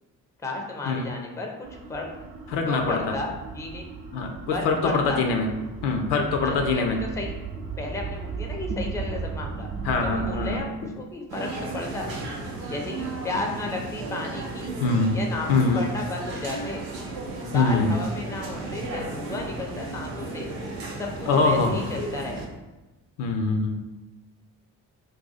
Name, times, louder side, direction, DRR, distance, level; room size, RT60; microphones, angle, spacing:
voice 1, 0.4-2.0 2.7-3.9 4.5-5.2 6.4-7.3 7.8-9.7 10.0-12.1 12.7-14.7 15.1-16.9 17.5-20.5 21.0-22.4, left 2 dB, 5° left, 1 dB, 0.5 m, -33 dB
sound 1, 1.6-10.6, right 5 dB, 45° right, 0.6 m, -36 dB
voice 2, 2.5-3.2 4.1-5.5 5.8-7.0 9.8-10.9 14.8-15.2 15.5-15.8 17.5-17.9 21.3-21.9 23.2-23.8, left 3 dB, 60° left, 4 dB, 0.6 m, -24 dB
sound 2, 11.3-22.5, right 2 dB, 85° right, 0.6 m, -34 dB
2.6 x 2.3 x 4.0 m, 1.1 s
figure-of-eight pair, 40°, 48 cm